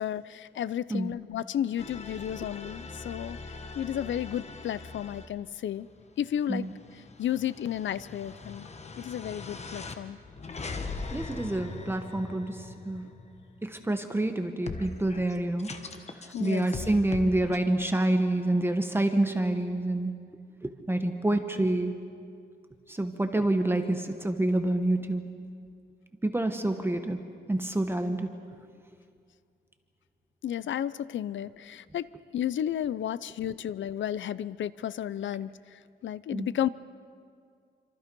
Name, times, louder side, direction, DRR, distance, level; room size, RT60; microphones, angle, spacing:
voice 1, 0.0-3.4 3.8-5.9 6.2-6.7 6.9-8.7 9.0-10.2 13.0-13.1 16.3-16.7 30.4-36.7, left 10 dB, 85° left, 17 dB, 0.6 m, -33 dB
sound 1, 1.8-5.3 5.8-14.0 14.7-17.6, left 3 dB, 35° left, 1.2 m, -41 dB
voice 2, 11.1-13.1 13.6-15.7 16.4-20.2 20.6-21.9 22.9-25.2 26.2-27.2 27.5-28.3 36.3-36.5, right 1 dB, 10° right, 6 dB, 1.1 m, -27 dB
27.0 x 26.0 x 5.4 m, 2.2 s
wide cardioid pair, 155°, 19 cm